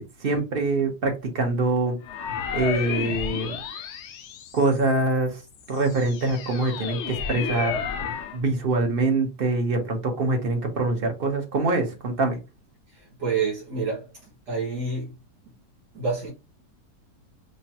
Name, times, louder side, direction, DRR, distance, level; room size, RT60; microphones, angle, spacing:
voice 1, 0.0-2.0 2.5-3.5 4.5-5.4 5.7-7.7 8.3-12.4, right 2 dB, 40° right, 1.0 m, -24 dB
sound 1, 2.0-5.0 5.5-8.4, left 7 dB, 70° left, 0.7 m, -32 dB
voice 2, 12.9-14.1 14.5-15.1 15.9-16.3, right 4 dB, 75° right, 2.5 m, -28 dB
5.4 x 2.3 x 2.9 m
omnidirectional pair, 1.8 m